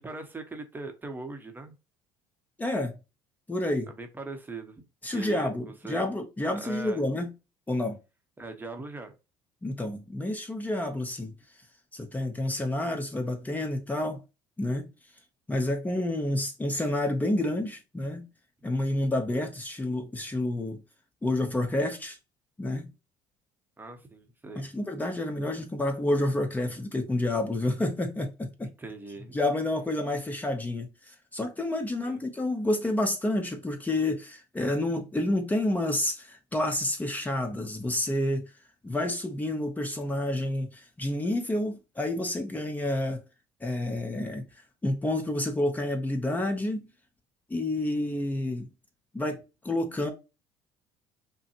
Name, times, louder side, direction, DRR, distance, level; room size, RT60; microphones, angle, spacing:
voice 1, 0.0-1.7 3.9-6.0 6.5-7.0 8.4-9.1 23.8-24.7 28.8-29.4 32.0-32.2, right 3 dB, 15° right, 0.9 m, -40 dB
voice 2, 2.6-3.0 3.5-3.9 5.0-7.3 7.7-8.0 9.6-11.3 11.9-14.2 14.6-14.9 15.5-18.3 18.6-20.8 21.2-22.2 22.6-22.9 24.5-28.7 29.3-38.4 38.8-43.2 43.6-44.4 44.8-46.9 47.5-48.7 49.1-50.1, left 1 dB, 15° left, 0.9 m, -29 dB
5.3 x 2.2 x 2.9 m
supercardioid pair, 85°, 11 cm